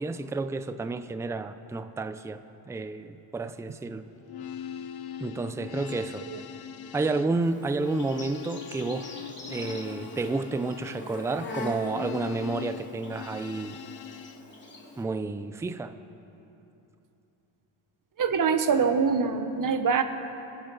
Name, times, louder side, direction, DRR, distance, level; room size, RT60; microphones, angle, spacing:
voice 1, 0.0-4.1 5.2-6.3 6.9-9.1 9.5-13.8 15.0-15.9, right 3 dB, 5° right, 10 dB, 0.4 m, -31 dB
sound 1, 4.2-14.4, left 8 dB, 50° left, 0.9 m, -41 dB
Insect, 7.4-15.0, left 2 dB, 20° left, 2.8 m, -43 dB
voice 2, 18.2-20.0, right 5 dB, 40° right, 8 dB, 1.3 m, -24 dB
26.5 x 9.0 x 5.6 m, 2.9 s
cardioid pair, 110°, 49 cm